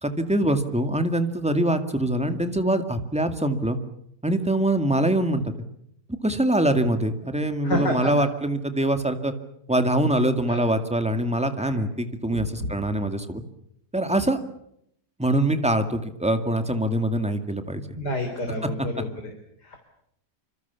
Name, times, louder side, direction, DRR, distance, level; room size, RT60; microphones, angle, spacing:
voice 1, 0.0-3.8 4.2-5.5 6.2-9.3 9.7-13.4 13.9-14.4 15.2-17.8 18.8-18.9, right 1 dB, 5° right, 7 dB, 1.9 m, -24 dB
voice 2, 7.6-8.1 10.5-10.6 11.6-11.7 12.3-12.4 18.0-19.1, left 1 dB, 70° left, 4 dB, 4.4 m, -28 dB
26.5 x 26.0 x 7.1 m, 0.75 s
omnidirectional pair, 1.8 m